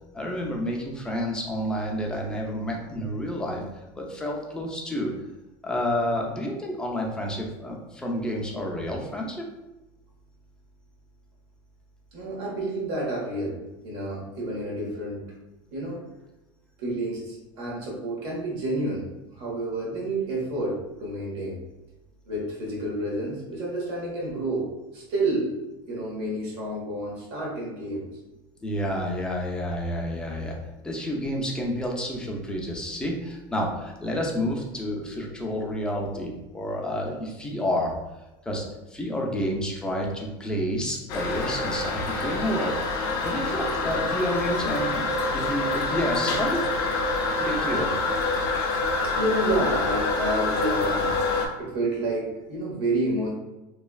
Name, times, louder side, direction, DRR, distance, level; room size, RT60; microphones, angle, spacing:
voice 1, 0.1-3.6 3.9-5.1 5.6-9.4 28.6-30.6 30.8-38.0 38.5-38.6 38.9-42.7 43.2-46.6 47.4-47.9, equal, 5° left, -1 dB, 0.5 m, -29 dB
voice 2, 12.1-13.6 13.8-15.2 15.7-16.0 16.8-21.6 22.3-25.6 25.9-28.0 49.2-53.3, right 1 dB, 75° right, -3 dB, 1.3 m, -29 dB
Toilet flush, 41.1-51.5, left 3 dB, 70° left, 0.7 m, -26 dB
3.1 x 2.3 x 2.3 m, 1.0 s
supercardioid pair, 135°, 13 cm